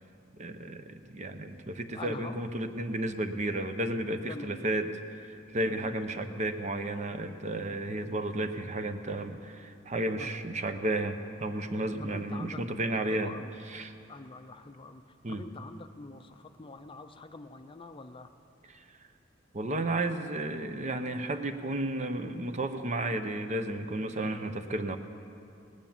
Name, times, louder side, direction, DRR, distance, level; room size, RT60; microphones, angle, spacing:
voice 1, 0.4-4.9 5.2-13.3 13.7-13.9 15.2-15.4 18.7-19.0 19.5-25.0, right 1 dB, 40° right, 8 dB, 0.7 m, -33 dB
voice 2, 1.9-2.4 4.3-4.6 5.7-6.3 7.7-8.2 10.2-10.3 12.0-12.6 13.1-13.5 14.1-15.0 15.3-18.3, left 3 dB, 25° left, 8 dB, 0.5 m, -45 dB
18.5 x 9.6 x 7.2 m, 2.7 s
head